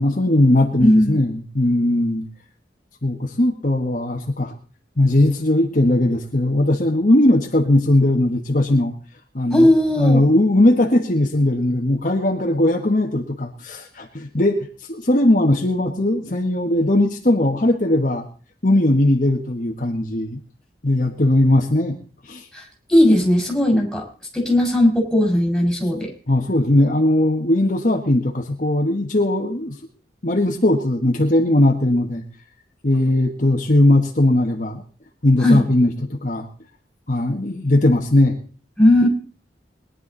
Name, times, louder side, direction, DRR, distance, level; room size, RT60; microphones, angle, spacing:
voice 1, 0.0-2.3 3.0-4.5 5.0-8.9 9.3-9.7 10.0-14.6 14.9-18.3 18.6-20.4 20.8-22.0 22.2-22.4 26.3-29.8 30.2-32.2 32.8-34.8 35.2-36.5 37.1-38.4, left 1 dB, 45° left, 1 dB, 1.6 m, -18 dB
voice 2, 0.8-1.2 9.5-10.2 22.5-22.6 22.9-24.0 24.3-26.1 35.4-35.6 38.8-39.1, left 1 dB, ahead, -1 dB, 4.9 m, -16 dB
21.0 x 11.0 x 4.1 m, 0.39 s
head